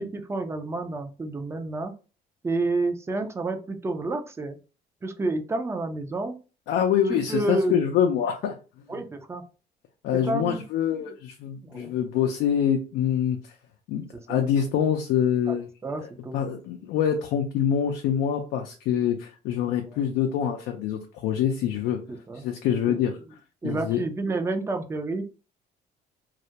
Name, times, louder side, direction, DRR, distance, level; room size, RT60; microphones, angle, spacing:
voice 1, 0.0-1.9 2.4-4.6 5.0-6.4 7.1-7.8 8.9-9.4 10.1-10.6 10.9-11.0 11.6-11.9 14.3-14.4 15.5-16.4 22.1-22.4 22.9-23.0 23.6-25.2, right 2 dB, 15° right, 6 dB, 0.4 m, -30 dB
voice 2, 6.7-8.5 10.0-13.5 13.9-15.7 16.0-22.0 22.3-23.2 23.6-24.0, left 9 dB, 85° left, 3 dB, 0.4 m, -25 dB
2.3 x 2.1 x 2.7 m, 0.33 s
cardioid pair, 110°, 17 cm